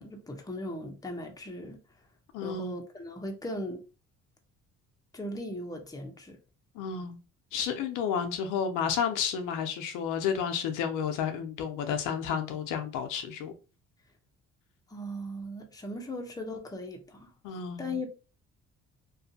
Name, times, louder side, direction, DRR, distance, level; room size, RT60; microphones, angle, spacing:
voice 1, 0.0-1.8 2.4-3.8 5.1-6.4 14.9-17.3 17.8-18.1, left 1 dB, 10° left, 0.7 m, -38 dB
voice 2, 2.3-2.8 6.8-7.2 7.5-13.5 17.4-18.0, left 7 dB, 85° left, 0.6 m, -31 dB
2.5 x 2.3 x 2.6 m
cardioid pair, 85°, 31 cm